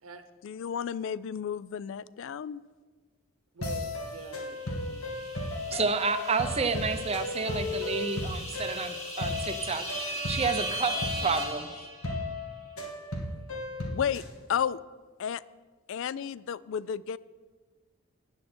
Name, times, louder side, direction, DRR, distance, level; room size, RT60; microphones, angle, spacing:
voice 1, 0.4-2.6 13.9-14.2 14.5-14.8 15.2-15.4 15.9-17.2, left 8 dB, 60° left, 19 dB, 0.3 m, -32 dB
voice 2, 3.5-5.3 5.6-5.9, right 4 dB, 75° right, 10 dB, 0.9 m, -47 dB
sound 1, 3.6-14.3, left 2 dB, 80° left, 2.0 m, -35 dB
sound 2, 4.4-12.4, equal, 30° left, 2.6 m, -39 dB
voice 3, 5.7-9.8 10.3-11.7, right 4 dB, 30° right, 10 dB, 0.6 m, -30 dB
14.0 x 9.7 x 4.4 m, 1.4 s
head